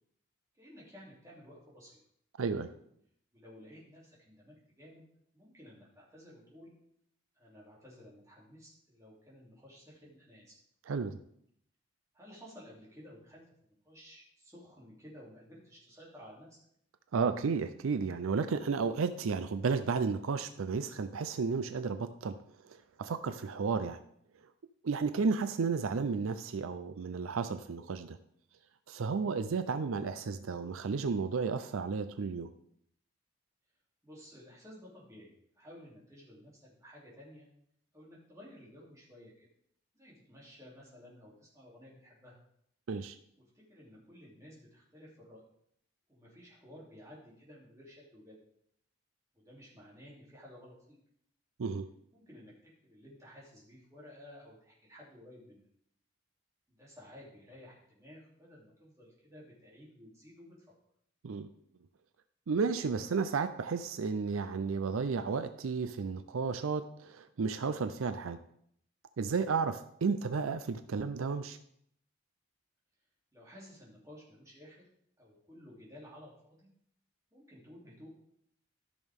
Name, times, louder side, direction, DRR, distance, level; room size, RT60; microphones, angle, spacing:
voice 1, 0.6-2.0 3.3-5.0 5.3-6.7 7.3-10.5 12.1-16.6 34.0-37.5 37.9-39.3 39.9-42.4 43.5-45.4 46.1-48.4 49.3-51.0 52.1-55.6 56.7-60.6 73.3-74.8 75.2-76.7 77.3-78.1, equal, 15° right, -6 dB, 3.0 m, -54 dB
voice 2, 2.4-2.7 10.9-11.2 17.1-22.4 22.6-24.0 24.8-28.2 28.9-32.5 42.9-43.2 51.6-51.9 61.2-61.5 62.5-68.4 69.2-71.6, right 5 dB, 75° right, 11 dB, 0.5 m, -33 dB
14.0 x 6.2 x 3.6 m, 0.69 s
head